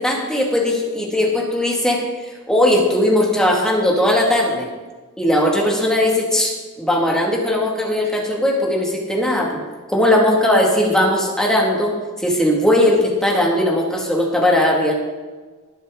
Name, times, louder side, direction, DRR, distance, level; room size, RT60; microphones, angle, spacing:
voice 1, 0.0-2.0 2.5-4.7 5.2-6.5 6.8-9.6 9.9-11.9 12.2-14.9, left 1 dB, 5° left, -2 dB, 2.0 m, -18 dB
20.0 x 6.9 x 3.8 m, 1.3 s
head